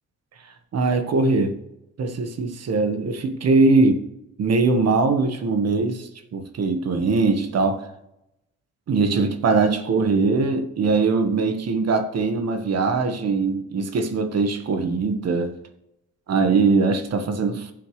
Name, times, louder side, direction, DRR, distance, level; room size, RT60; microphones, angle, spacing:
voice 1, 0.7-1.6 2.0-4.0 4.4-7.9 8.9-15.5 16.3-17.7, right 3 dB, 55° right, 1.5 m, -21 dB
15.0 x 7.7 x 3.3 m
cardioid pair, 90°, 30 cm